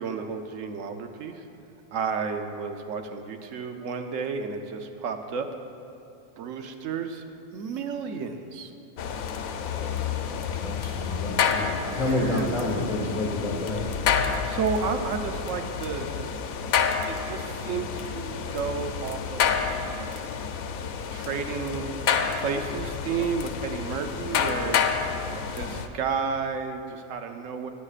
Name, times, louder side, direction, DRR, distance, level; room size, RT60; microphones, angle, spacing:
voice 1, 0.0-1.5 1.9-5.5 6.4-7.3 7.5-8.7 12.0-12.9 14.5-16.4 17.1-20.1 21.1-22.0 22.3-24.8 25.5-27.7, right 5 dB, 70° right, 6 dB, 1.0 m, -32 dB
sound 1, 9.0-25.9, left 7 dB, 85° left, 1.1 m, -29 dB
voice 2, 10.4-13.8, left 2 dB, 35° left, -3 dB, 1.4 m, -29 dB
16.0 x 9.6 x 2.4 m, 2.6 s
omnidirectional pair, 1.4 m